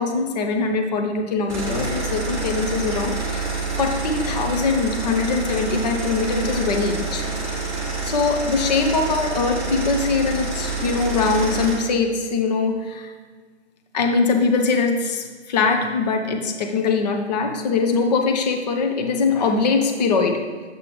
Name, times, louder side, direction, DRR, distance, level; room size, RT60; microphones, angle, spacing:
voice 1, 0.0-3.5 3.8-7.2 8.0-13.1 13.9-20.4, left 4 dB, 40° left, 4 dB, 0.7 m, -22 dB
sound 1, 1.5-11.8, right 3 dB, ahead, 1.7 m, -27 dB
7.6 x 7.5 x 3.1 m, 1.5 s
figure-of-eight pair, 140°, 34 cm